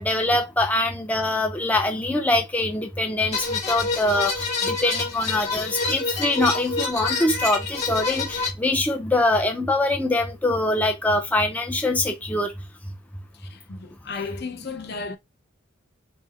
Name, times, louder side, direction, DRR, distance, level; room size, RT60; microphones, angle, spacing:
voice 1, 0.0-12.5, left 2 dB, 5° left, 0.4 m, -23 dB
sound 1, 3.3-8.5, left 3 dB, 35° left, 1.4 m, -27 dB
voice 2, 13.3-15.2, left 4 dB, 50° left, 0.6 m, -34 dB
4.3 x 2.0 x 4.1 m
head